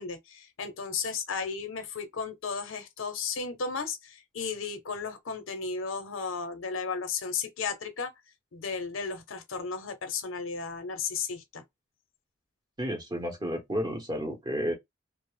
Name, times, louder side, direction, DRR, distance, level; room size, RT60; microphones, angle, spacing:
voice 1, 0.0-8.1 8.5-11.6, left 5 dB, 85° left, 0.6 m, -34 dB
voice 2, 12.8-14.7, equal, 20° right, 0.8 m, -31 dB
2.3 x 2.0 x 3.1 m
head